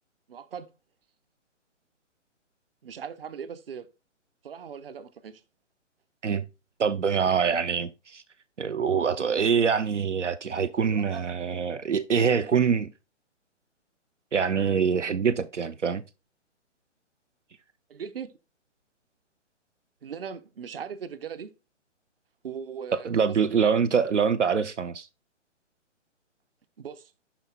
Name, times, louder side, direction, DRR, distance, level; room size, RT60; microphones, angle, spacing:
voice 1, 0.3-0.7 2.8-3.9 4.4-5.4 7.4-7.6 10.9-11.2 17.9-18.3 20.0-21.5 22.4-23.7 26.8-27.1, right 7 dB, 50° right, 0.8 m, -39 dB
voice 2, 6.8-8.2 8.6-12.9 14.3-16.0 23.0-25.1, right 6 dB, 75° right, 0.7 m, -25 dB
12.0 x 4.2 x 2.2 m
figure-of-eight pair, 135°, 37 cm